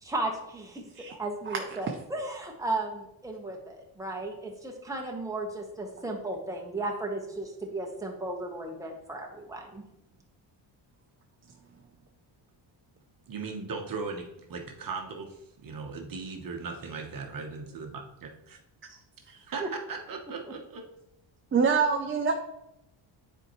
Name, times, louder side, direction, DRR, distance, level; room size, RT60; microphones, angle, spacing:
voice 1, 0.0-0.8 1.1-9.8 19.6-19.7 20.4-20.5, right 2 dB, 5° right, 0 dB, 1.2 m, -35 dB
voice 2, 13.3-18.6 19.4-20.9, right 4 dB, 45° right, 3 dB, 1.1 m, -38 dB
voice 3, 21.5-22.3, right 5 dB, 25° right, 3 dB, 0.6 m, -25 dB
9.7 x 4.5 x 3.1 m, 0.83 s
cardioid pair, 120°, 47 cm